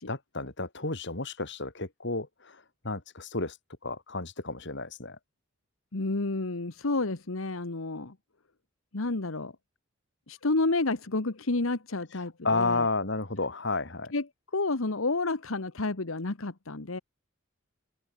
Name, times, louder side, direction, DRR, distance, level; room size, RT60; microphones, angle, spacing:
voice 1, 0.1-2.6 2.8-3.6 3.8-5.2 12.4-14.1, left 3 dB, 60° left, 3.5 m, -31 dB
voice 2, 5.9-8.1 8.9-9.5 10.3-12.9 14.1-14.3 14.5-17.0, left 2 dB, 80° left, 1.4 m, -30 dB
head